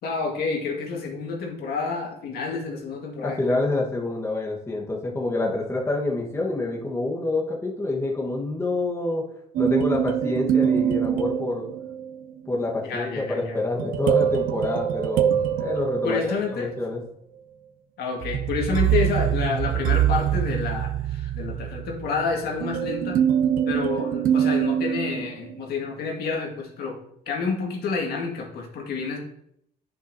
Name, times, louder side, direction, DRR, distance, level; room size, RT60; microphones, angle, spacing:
voice 1, 0.0-3.6 12.8-13.6 16.0-16.7 18.0-23.2 23.7-27.0 27.3-29.2, left 4 dB, 70° left, 0 dB, 1.9 m, -29 dB
voice 2, 3.2-9.2 9.6-11.7 12.5-17.0, left 2 dB, 15° left, -2 dB, 1.3 m, -27 dB
sound 1, 9.6-12.2 13.8-16.8 18.2-25.5, right 10 dB, 55° right, 0.4 m, -24 dB
9.9 x 5.5 x 2.7 m, 0.74 s
cardioid pair, 110°, 17 cm